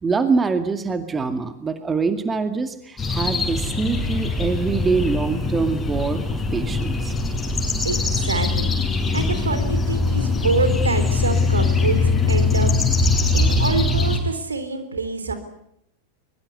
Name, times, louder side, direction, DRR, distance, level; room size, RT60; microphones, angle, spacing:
voice 1, 0.0-6.2 6.5-7.1, right 4 dB, 15° right, 9 dB, 2.2 m, -24 dB
sound 1, 3.0-14.2, left 3 dB, 15° left, 6.9 m, -22 dB
voice 2, 7.8-8.7 9.1-15.3, right 4 dB, 75° right, 10 dB, 3.8 m, -26 dB
23.5 x 22.5 x 9.6 m, 0.75 s
figure-of-eight pair, 90°, 0 cm